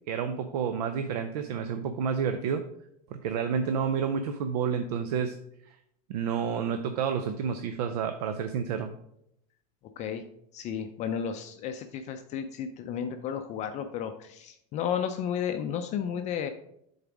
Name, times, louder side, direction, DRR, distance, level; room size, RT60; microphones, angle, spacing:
voice 1, 0.1-2.7 3.1-5.4 5.7-5.8 6.1-8.9, right 7 dB, 80° right, 8 dB, 0.6 m, -30 dB
voice 2, 10.5-16.5, left 8 dB, 35° left, 7 dB, 0.5 m, -33 dB
6.8 x 4.0 x 4.9 m, 0.76 s
supercardioid pair, 135°, 20 cm